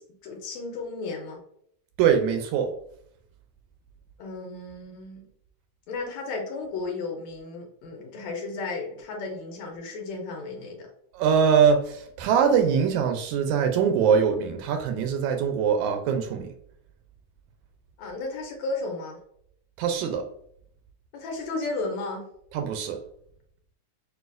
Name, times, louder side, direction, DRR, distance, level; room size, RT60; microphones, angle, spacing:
voice 1, 0.0-1.4 4.2-5.3 5.9-10.9 18.0-19.2 21.1-22.3, left 3 dB, 75° left, 1 dB, 2.0 m, -34 dB
voice 2, 2.0-2.7 11.1-16.5 19.8-20.2 22.5-23.0, right 7 dB, 80° right, 6 dB, 1.9 m, -22 dB
6.3 x 2.5 x 2.4 m, 0.69 s
omnidirectional pair, 3.5 m